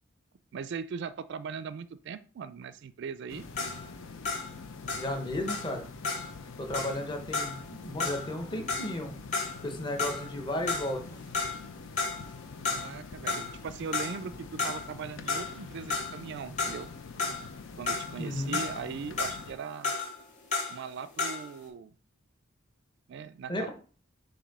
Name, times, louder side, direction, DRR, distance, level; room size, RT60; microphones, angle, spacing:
voice 1, 0.5-3.5 12.7-16.9 17.8-19.9 20.7-21.9 23.1-23.7, right 6 dB, 60° right, 14 dB, 0.4 m, -39 dB
sound 1, 3.3-19.5, left 4 dB, 85° left, 0.6 m, -46 dB
sound 2, 3.4-10.4 10.7-11.7 12.0-13.0 13.3-21.6, left 4 dB, 40° left, 2.1 m, -34 dB
voice 2, 5.0-5.9 6.6-9.1 9.6-11.2 18.2-18.6 23.5-23.7, left 1 dB, 25° left, 3 dB, 1.0 m, -34 dB
7.1 x 2.7 x 5.3 m, 0.39 s
head